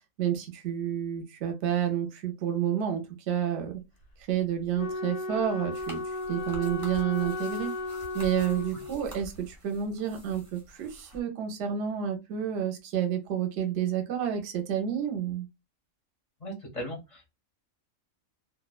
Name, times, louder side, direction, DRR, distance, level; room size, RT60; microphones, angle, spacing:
voice 1, 0.2-3.8 4.3-6.0 6.3-7.7 8.1-15.5, right 9 dB, 65° right, 0.8 m, -30 dB
Wind instrument woodwind instrument, 4.7-9.2, left 2 dB, 85° left, 1.0 m, -35 dB
sound 1, 5.7-11.2, equal, 30° right, 0.8 m, -47 dB
voice 2, 16.4-17.3, equal, 40° left, 0.5 m, -38 dB
2.6 x 2.1 x 2.3 m
omnidirectional pair, 1.4 m